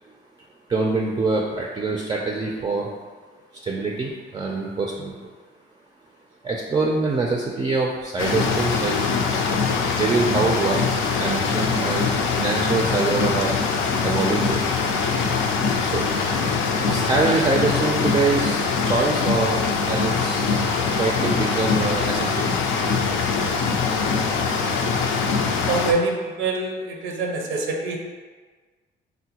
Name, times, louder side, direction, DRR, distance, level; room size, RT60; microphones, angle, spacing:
voice 1, 0.7-2.9 3.6-5.1 6.4-9.4 10.0-10.8 11.2-13.5 14.0-14.6 15.8-16.1 16.9-20.6 21.0-22.6, right 3 dB, 20° right, -1 dB, 0.4 m, -24 dB
sound 1, 8.2-25.9, left 5 dB, 80° left, 0.4 m, -23 dB
voice 2, 25.7-28.0, right 3 dB, 80° right, 1 dB, 0.6 m, -25 dB
3.7 x 2.1 x 2.8 m, 1.4 s
cardioid pair, 90°, 20 cm